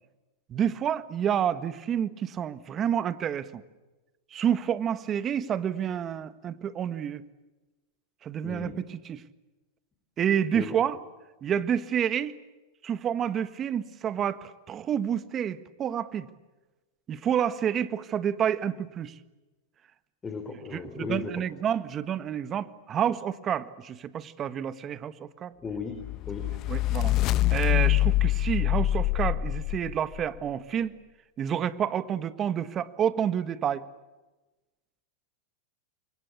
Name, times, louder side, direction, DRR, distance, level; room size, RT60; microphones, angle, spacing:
voice 1, 0.5-3.6 4.3-7.2 8.2-9.2 10.2-11.0 11.4-12.4 12.8-16.3 17.1-19.1 20.7-25.5 26.7-31.0 31.4-33.8, right 9 dB, 30° right, 14 dB, 1.5 m, -29 dB
voice 2, 8.4-8.8 10.5-10.8 20.2-21.3 25.6-26.0 26.3-26.5, left 5 dB, 20° left, 6 dB, 3.9 m, -36 dB
sound 1, 26.0-30.2, left 15 dB, 40° left, 0.9 m, -25 dB
29.0 x 24.0 x 8.5 m, 1.1 s
hypercardioid pair, 120°, 0 cm